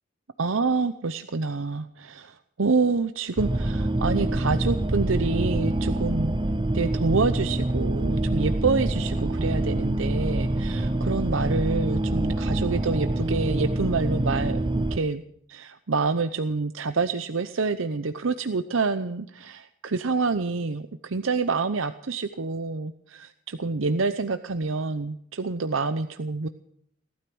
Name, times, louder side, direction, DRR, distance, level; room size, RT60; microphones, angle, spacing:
voice 1, 0.4-6.3 6.7-15.2 15.5-26.5, right 4 dB, 80° right, 10 dB, 0.8 m, -27 dB
sound 1, 3.4-15.0, right 1 dB, 25° right, 0.6 m, -26 dB
18.5 x 13.0 x 6.2 m, 0.70 s
head